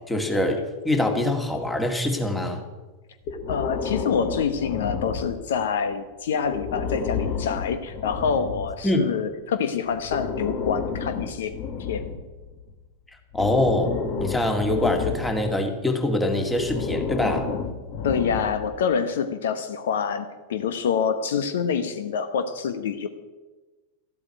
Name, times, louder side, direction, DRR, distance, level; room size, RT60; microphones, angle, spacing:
voice 1, 0.0-2.6 8.8-9.0 13.3-17.5, left 1 dB, 10° left, 4 dB, 2.3 m, -24 dB
Breathing, 3.2-5.7 6.4-8.8 9.9-12.7 13.3-15.6 16.5-18.8, left 6 dB, 40° left, 1.6 m, -31 dB
voice 2, 3.5-11.5 11.8-12.1 18.0-23.1, left 6 dB, 60° left, 10 dB, 1.0 m, -26 dB
13.5 x 8.6 x 9.5 m, 1.2 s
figure-of-eight pair, 90°, 0 cm